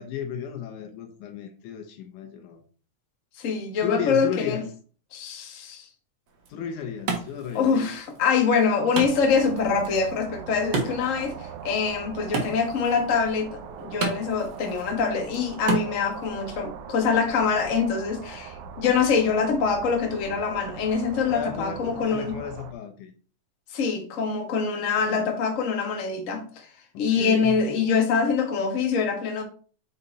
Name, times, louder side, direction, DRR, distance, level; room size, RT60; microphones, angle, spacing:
voice 1, 0.0-2.6 3.8-4.7 6.5-7.9 21.3-23.1 25.0-25.3 26.9-27.6, left 8 dB, 85° left, 2.4 m, -33 dB
voice 2, 3.4-4.6 5.1-5.9 7.5-13.5 13.8-22.4 23.7-26.7 27.0-29.4, left 5 dB, 55° left, 0.8 m, -24 dB
Wood, 6.3-16.3, right 4 dB, 50° right, 1.6 m, -35 dB
sound 1, 8.9-22.7, right 7 dB, 80° right, 2.1 m, -41 dB
5.6 x 5.1 x 4.0 m
omnidirectional pair, 3.5 m